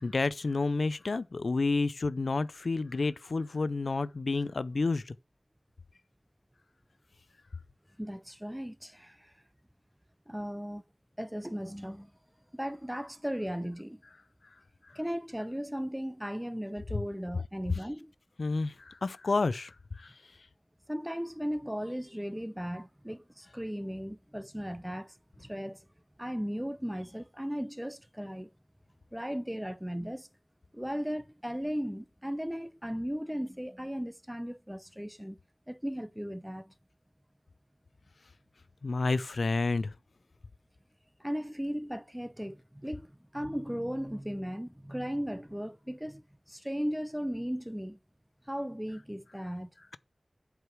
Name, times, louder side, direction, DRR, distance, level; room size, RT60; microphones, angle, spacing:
voice 1, 0.0-5.1 18.4-20.1 38.8-39.9, left 3 dB, 85° left, 0.4 m, -30 dB
voice 2, 8.0-9.3 10.3-10.8 11.2-12.1 12.5-14.0 14.9-18.1 20.9-25.8 26.2-28.5 29.1-30.3 30.7-35.4 35.7-36.7 41.2-48.0 48.5-49.7, equal, 5° right, 0.6 m, -36 dB
8.0 x 4.7 x 4.7 m
wide cardioid pair, 70°, 0 cm